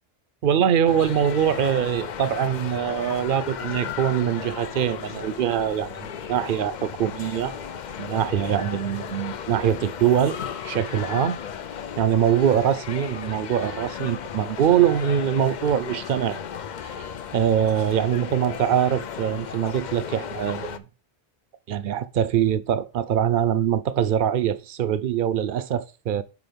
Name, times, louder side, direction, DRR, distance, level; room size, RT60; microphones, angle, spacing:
voice 1, 0.4-7.5 8.0-10.4 10.6-11.4 12.0-16.4 17.0-17.1 17.3-20.8 21.7-26.2, right 9 dB, 60° right, 0.7 m, -23 dB
sound 1, 0.9-20.8, left 8 dB, 55° left, 0.6 m, -35 dB
5.9 x 5.1 x 5.2 m
omnidirectional pair, 1.1 m